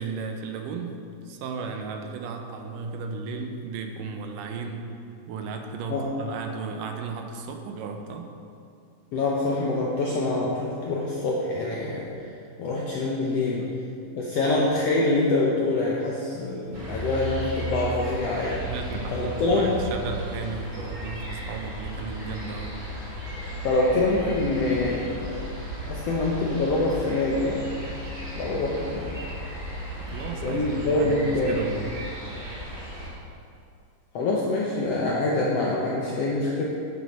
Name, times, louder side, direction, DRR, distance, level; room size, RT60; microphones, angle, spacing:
voice 1, 0.0-4.9 5.3-8.3 13.6-13.7 18.6-22.8 30.0-31.9, right 4 dB, 80° right, 4 dB, 2.3 m, -34 dB
voice 2, 9.1-12.1 12.6-13.7 14.1-18.6 19.1-19.8 23.6-25.4 25.8-27.7 28.3-29.1 30.4-31.6 34.1-36.6, left 2 dB, 75° left, -4 dB, 1.4 m, -25 dB
sound 1, 16.7-33.1, right 1 dB, 25° right, 2.1 m, -35 dB
10.5 x 6.2 x 4.2 m, 2.5 s
omnidirectional pair, 3.8 m